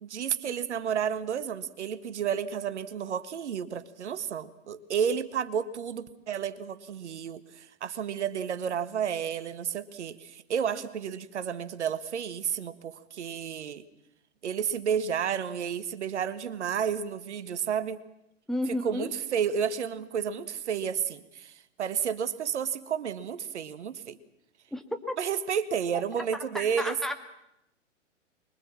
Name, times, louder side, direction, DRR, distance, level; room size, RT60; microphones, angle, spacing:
voice 1, 0.0-13.8 14.4-18.0 18.7-24.2 25.2-26.9, right 8 dB, 65° right, 13 dB, 1.5 m, -31 dB
voice 2, 18.5-19.1 24.7-25.1 25.9-26.0 26.5-27.1, left 1 dB, ahead, 4 dB, 2.0 m, -32 dB
25.0 x 22.5 x 7.5 m, 0.83 s
figure-of-eight pair, 115°, 37 cm